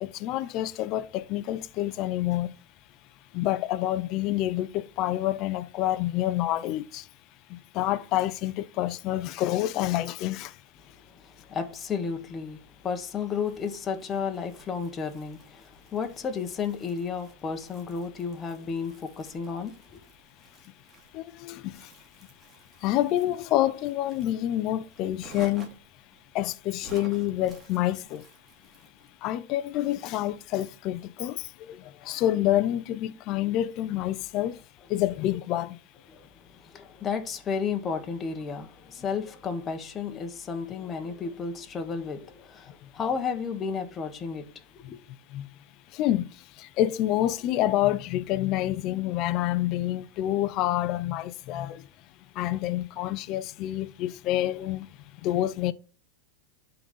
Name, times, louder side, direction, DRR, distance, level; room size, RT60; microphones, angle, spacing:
voice 1, 0.0-2.5 3.3-7.0 7.5-10.5 21.1-21.9 22.8-25.7 26.3-28.2 29.2-34.6 34.9-35.8 45.3-45.5 45.9-46.3 46.6-51.8 52.4-54.9 55.2-55.7, left 13 dB, 30° left, 0.5 m, -28 dB
voice 2, 11.0-20.0 36.1-44.5 44.7-45.0, left 6 dB, 15° left, 1.0 m, -33 dB
Crumpling crinkling, 13.4-29.2, right 3 dB, 10° right, 2.2 m, -53 dB
11.5 x 3.9 x 7.7 m
supercardioid pair, 170°, 0 cm